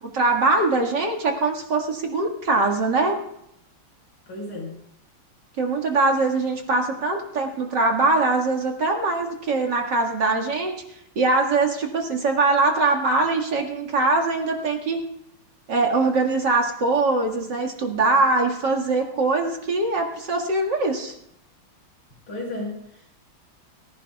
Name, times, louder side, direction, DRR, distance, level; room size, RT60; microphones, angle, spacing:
voice 1, 0.0-3.2 5.6-10.8 11.2-15.0 15.7-21.1, right 3 dB, 55° right, 1 dB, 2.5 m, -22 dB
voice 2, 4.3-4.8 22.3-23.1, left 2 dB, 80° left, -1 dB, 5.9 m, -33 dB
25.0 x 16.0 x 2.4 m, 0.76 s
omnidirectional pair, 2.3 m